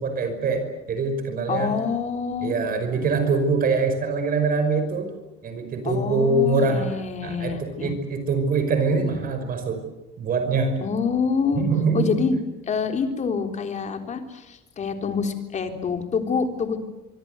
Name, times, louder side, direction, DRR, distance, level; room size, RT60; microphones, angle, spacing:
voice 1, 0.0-1.8 2.4-5.1 5.4-6.9 7.2-9.8 10.2-10.8 11.5-12.2, right 3 dB, 45° right, 8 dB, 5.5 m, -24 dB
voice 2, 1.5-2.5 5.8-7.9 10.8-11.6 11.9-12.4 12.7-16.8, left 5 dB, 35° left, 5 dB, 3.8 m, -26 dB
25.0 x 25.0 x 8.0 m, 1.0 s
cardioid pair, 155°, 21 cm